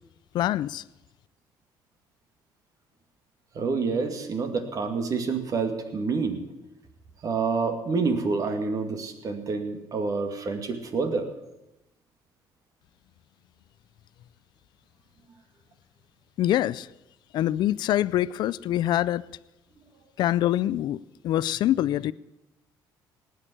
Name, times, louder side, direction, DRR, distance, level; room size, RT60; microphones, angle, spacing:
voice 1, 0.3-0.8 16.4-16.9 17.3-19.2 20.2-21.0 21.2-22.1, left 13 dB, 65° left, 0.4 m, -24 dB
voice 2, 3.5-6.4 7.2-11.3, right 4 dB, 45° right, 2.4 m, -28 dB
18.5 x 6.6 x 10.0 m
cardioid pair, 100°, 8 cm